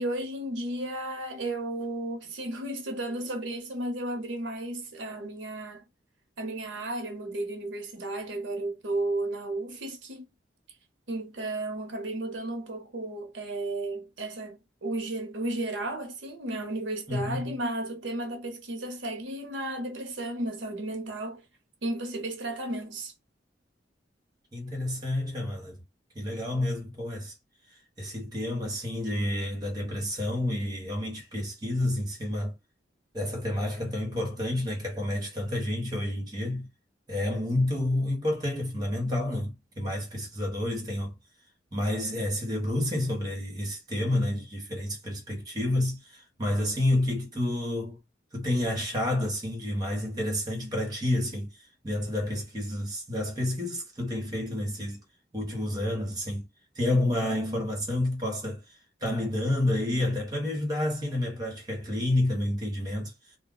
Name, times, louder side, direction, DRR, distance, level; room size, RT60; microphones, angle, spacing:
voice 1, 0.0-5.9 6.4-10.3 11.1-21.4 21.8-23.1, right 1 dB, 90° right, 0.8 m, -33 dB
voice 2, 17.1-17.6 24.5-25.8 26.1-27.3 28.0-32.6 33.1-36.7 37.1-41.1 41.7-48.0 48.3-51.5 51.8-55.0 55.3-56.5 56.7-58.6 59.0-63.1, left 1 dB, 20° right, 1.2 m, -29 dB
2.4 x 2.1 x 3.8 m
head